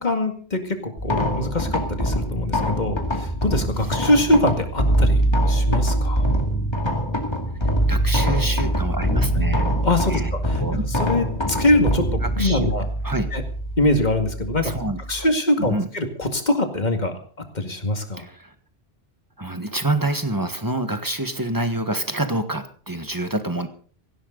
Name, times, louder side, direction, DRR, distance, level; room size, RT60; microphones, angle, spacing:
voice 1, 0.0-5.2 5.5-6.2 9.8-10.6 11.0-12.9 13.3-13.4 13.8-14.7 15.1-17.2 17.5-18.2, left 1 dB, 45° left, 6 dB, 2.3 m, -23 dB
sound 1, 1.0-15.2, right 1 dB, 25° left, 2.4 m, -23 dB
voice 2, 7.9-9.7 10.1-10.3 10.6-10.8 12.2-13.3 14.6-15.2 15.6-15.9 18.2-18.5 19.4-23.7, right 1 dB, 20° right, 8 dB, 1.5 m, -27 dB
18.0 x 16.0 x 4.0 m, 0.43 s
omnidirectional pair, 1.1 m